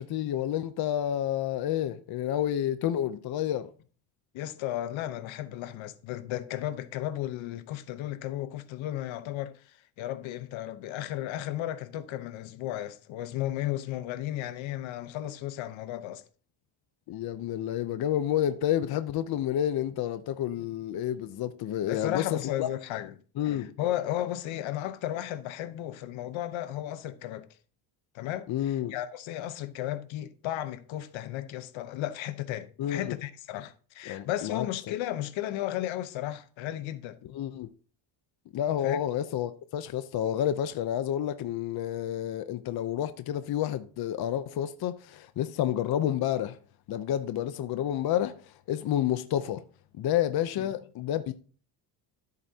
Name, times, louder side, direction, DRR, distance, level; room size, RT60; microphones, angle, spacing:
voice 1, 0.0-3.7 17.1-22.7 23.4-23.7 28.5-28.9 32.8-33.1 34.1-34.9 37.3-37.7 38.5-46.6 46.9-49.6 50.0-51.3, left 11 dB, 50° left, 0.7 m, -30 dB
voice 2, 4.3-16.2 21.8-23.1 23.4-27.5 28.1-37.2 38.8-39.0 50.6-50.7, left 13 dB, 75° left, 1.0 m, -34 dB
13.5 x 8.0 x 2.8 m
cardioid pair, 135°, 47 cm